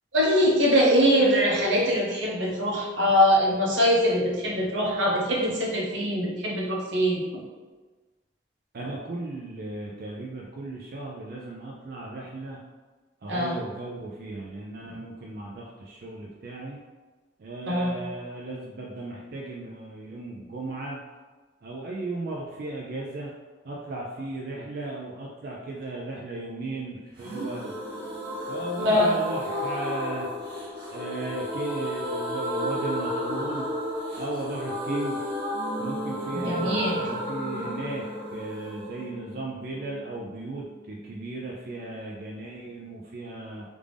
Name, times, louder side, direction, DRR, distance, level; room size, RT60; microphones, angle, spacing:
voice 1, 0.1-7.4 13.3-13.6 14.9-15.0 17.7-18.0 28.8-29.2 36.3-37.0, equal, 85° right, -3 dB, 0.9 m, -23 dB
voice 2, 8.7-12.6 13.2-16.8 17.4-21.0 21.6-23.3 23.6-27.7 28.5-30.3 30.9-33.7 34.1-35.2 35.8-38.0 38.3-43.6, right 2 dB, 50° right, -3 dB, 0.4 m, -36 dB
sound 1, 27.2-40.8 41.1-41.2 41.4-41.5, equal, 25° right, 0.9 m, -32 dB
3.4 x 2.5 x 3.4 m, 1.3 s
head